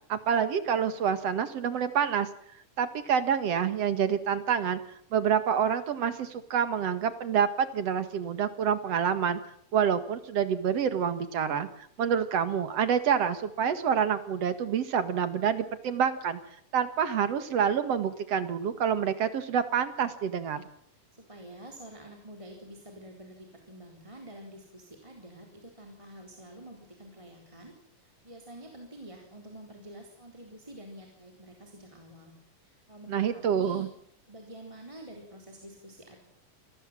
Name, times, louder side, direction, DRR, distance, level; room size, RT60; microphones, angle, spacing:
voice 1, 0.1-2.3 2.8-4.8 5.1-9.4 9.7-11.7 12.0-16.4 16.7-20.6 33.1-33.9, right 8 dB, 55° right, 11 dB, 2.6 m, -27 dB
voice 2, 21.2-33.9 34.3-36.2, right 1 dB, 10° right, 2 dB, 3.9 m, -48 dB
27.0 x 19.0 x 7.7 m, 0.65 s
omnidirectional pair, 3.5 m